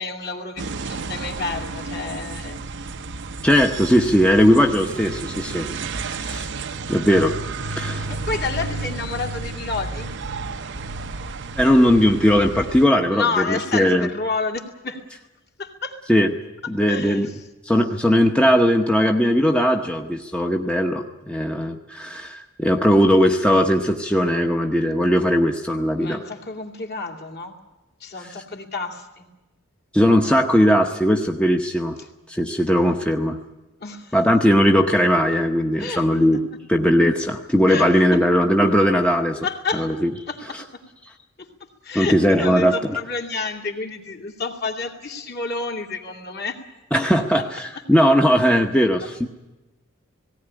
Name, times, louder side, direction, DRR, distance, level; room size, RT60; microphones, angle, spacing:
voice 1, 0.0-2.6 8.1-10.1 13.1-15.0 15.6-16.0 16.9-17.4 26.0-27.5 28.0-29.3 32.0-32.1 33.8-34.2 35.8-36.0 36.3-36.4 37.7-38.2 39.4-39.9 40.3-40.6 41.4-46.6 47.4-47.5, left 4 dB, 50° left, 2 dB, 2.5 m, -30 dB
sound 1, 0.6-12.8, right 3 dB, 55° right, 0.7 m, -32 dB
voice 2, 3.4-5.7 6.1-6.5 6.9-7.4 7.8-8.1 11.6-13.3 13.7-14.1 16.1-16.3 16.7-17.3 17.6-26.2 29.9-32.0 32.3-33.4 34.1-36.4 36.7-39.4 39.8-39.9 41.9-42.8 46.9-49.3, equal, 5° left, 2 dB, 0.9 m, -18 dB
18.0 x 17.5 x 10.0 m, 1.1 s
head